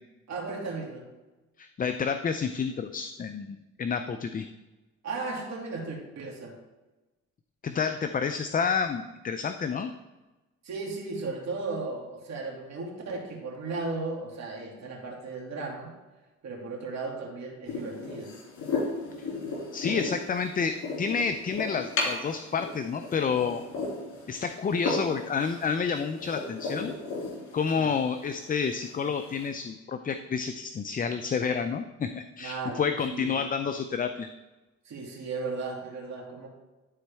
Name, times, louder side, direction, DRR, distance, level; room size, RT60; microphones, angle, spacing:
voice 1, 0.3-1.0 5.0-6.5 10.6-15.9 16.4-18.3 27.8-27.9 32.4-32.8 33.1-33.4 34.8-36.5, right 3 dB, 65° right, -2 dB, 2.5 m, -35 dB
voice 2, 1.6-4.5 7.6-9.9 19.7-23.6 24.3-26.9 27.5-34.3, left 6 dB, 30° left, 8 dB, 0.4 m, -29 dB
sound 1, 17.7-29.5, left 3 dB, 70° left, 2.8 m, -35 dB
12.0 x 4.2 x 3.5 m, 1.1 s
cardioid pair, 90°, 30 cm